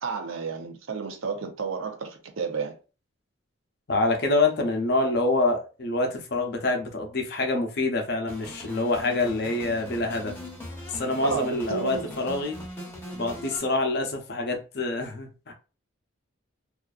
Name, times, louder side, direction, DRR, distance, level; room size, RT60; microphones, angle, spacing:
voice 1, 0.0-2.7 11.2-12.0, right 5 dB, 85° right, 0.6 m, -31 dB
voice 2, 3.9-10.3 10.9-12.6 13.1-15.5, left 2 dB, 55° left, 0.5 m, -26 dB
sound 1, 8.3-13.6, left 1 dB, 10° left, 0.7 m, -40 dB
2.4 x 2.4 x 2.3 m
head